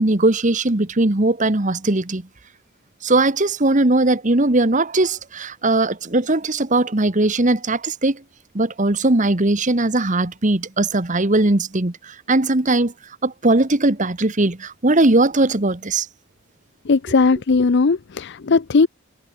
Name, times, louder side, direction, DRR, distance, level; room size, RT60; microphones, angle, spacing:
voice 1, 0.0-2.2 3.0-8.2 8.5-12.9 13.2-16.1, right 2 dB, 35° right, 1.3 m, -19 dB
voice 2, 16.9-18.9, left 4 dB, 50° left, 0.5 m, -17 dB
head